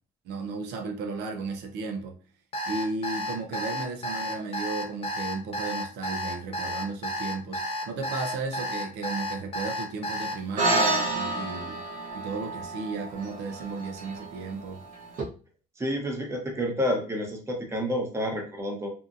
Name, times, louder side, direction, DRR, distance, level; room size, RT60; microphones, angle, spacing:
voice 1, 0.2-2.2 2.7-11.8 12.1-14.8, right 4 dB, 85° right, 3 dB, 0.5 m, -34 dB
Alarm, 2.5-10.3, equal, 35° left, 0.6 m, -32 dB
sound 1, 10.6-15.2, right 2 dB, 55° right, 0.8 m, -30 dB
voice 2, 15.8-18.9, equal, 15° right, 1 dB, 0.8 m, -29 dB
2.7 x 2.5 x 2.4 m, 0.36 s
cardioid pair, 110°, 17 cm